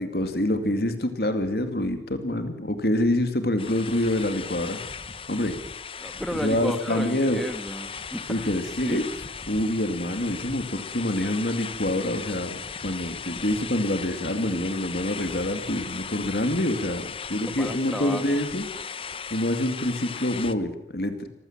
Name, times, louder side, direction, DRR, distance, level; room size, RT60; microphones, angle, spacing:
voice 1, 0.0-4.8 5.3-5.6 6.4-7.4 8.3-9.0 9.5-18.6 19.3-21.3, left 1 dB, 60° left, 8 dB, 2.3 m, -26 dB
sound 1, 3.6-20.5, left 6 dB, 30° left, 0.9 m, -37 dB
voice 2, 6.0-9.1 17.3-18.4, equal, ahead, 8 dB, 1.5 m, -33 dB
25.0 x 15.5 x 7.3 m, 0.86 s
head